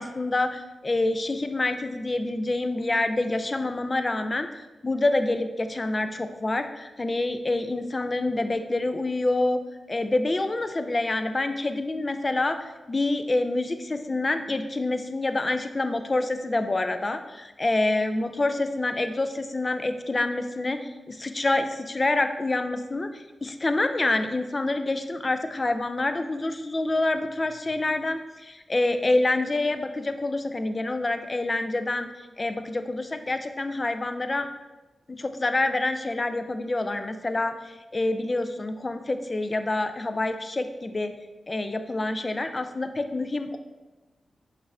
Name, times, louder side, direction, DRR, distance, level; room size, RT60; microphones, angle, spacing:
voice 1, 0.0-9.6 9.9-32.1 32.4-34.5 35.1-41.1 41.5-43.6, left 2 dB, 35° left, 8 dB, 0.4 m, -27 dB
5.2 x 2.5 x 3.3 m, 1.1 s
cardioid pair, 55°, 0 cm